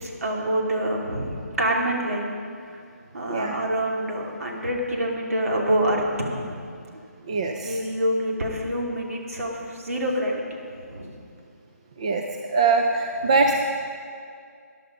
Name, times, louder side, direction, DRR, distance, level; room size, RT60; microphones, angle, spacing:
voice 1, 0.0-2.3 2.7-2.8 3.1-6.0 6.4-6.6 7.6-11.1 13.3-13.4, right 1 dB, 60° right, -1 dB, 2.8 m, -26 dB
voice 2, 7.3-7.8 12.0-12.2 12.5-13.5, right 4 dB, 25° right, 3 dB, 0.5 m, -22 dB
14.5 x 10.5 x 5.3 m, 2.3 s
hypercardioid pair, 175°, 9 cm